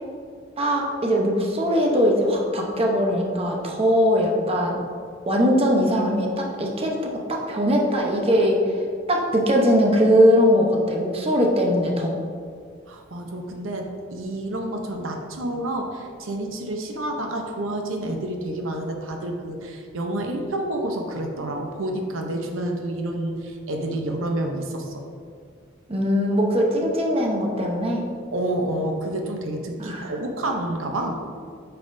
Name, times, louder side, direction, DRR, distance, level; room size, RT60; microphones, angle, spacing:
voice 1, 0.6-4.8 5.3-8.8 9.1-12.2 25.9-28.0 29.8-30.1, equal, 30° right, 0 dB, 0.8 m, -21 dB
voice 2, 12.9-25.0 28.3-31.2, right 1 dB, 85° right, 3 dB, 0.8 m, -29 dB
8.5 x 5.7 x 2.6 m, 2.2 s
head